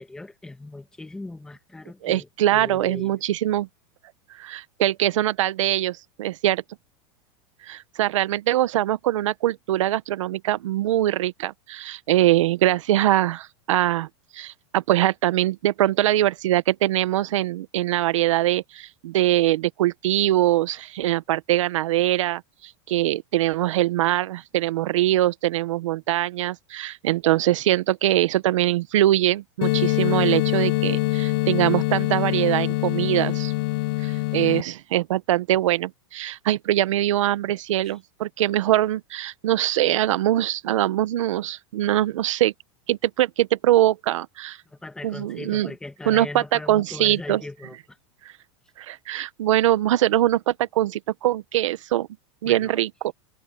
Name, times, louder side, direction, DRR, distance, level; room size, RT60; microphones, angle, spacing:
voice 1, 0.0-3.2 37.8-37.9 44.7-48.0 52.4-52.8, left 2 dB, 5° left, 1.6 m, -39 dB
voice 2, 2.0-3.7 4.4-6.6 7.6-14.1 14.3-33.5 34.0-42.5 42.9-44.6 45.0-45.7 46.0-47.4 48.8-52.1 52.4-53.1, right 14 dB, 85° right, 1.2 m, -23 dB
sound 1, 29.6-34.6, left 20 dB, 50° left, 0.5 m, -24 dB
supercardioid pair, 170°, 16 cm